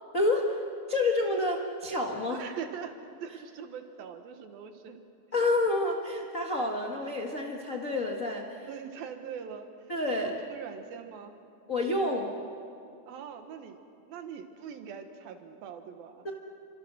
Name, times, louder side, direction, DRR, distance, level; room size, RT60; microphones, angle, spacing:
voice 1, 0.1-0.6 0.9-2.4 5.3-8.7 9.9-10.3 11.7-12.3 16.2-16.3, left 2 dB, 50° left, 0 dB, 0.9 m, -29 dB
voice 2, 2.3-2.9 3.2-5.0 8.6-9.7 10.1-11.4 13.1-13.8 14.1-16.3, right 7 dB, 75° right, 7 dB, 3.1 m, -42 dB
29.0 x 26.0 x 6.2 m, 2.5 s
omnidirectional pair, 4.4 m